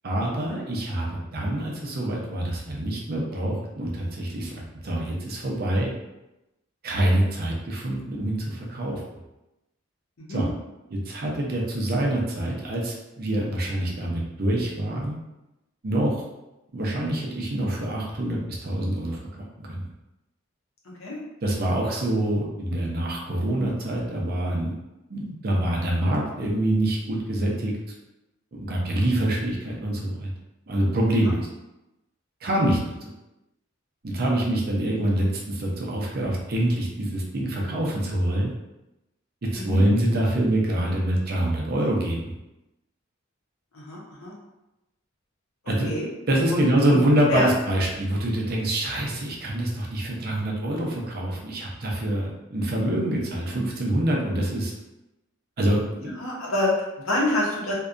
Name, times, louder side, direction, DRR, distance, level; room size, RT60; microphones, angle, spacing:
voice 1, 0.0-1.1 1.3-5.9 6.8-9.0 10.3-10.5 10.9-15.2 15.8-16.2 16.7-19.9 21.4-24.7 25.1-27.7 28.5-30.3 30.7-31.5 32.4-33.1 34.0-38.5 39.4-42.2 45.7-45.9 46.3-54.7 55.6-56.1, right 1 dB, 50° right, -2 dB, 0.5 m, -25 dB
voice 2, 43.7-44.3 45.8-46.1 46.5-47.0 47.3-47.5 56.2-57.7, left 2 dB, 80° left, -3 dB, 0.7 m, -27 dB
2.6 x 2.2 x 2.4 m, 0.96 s
head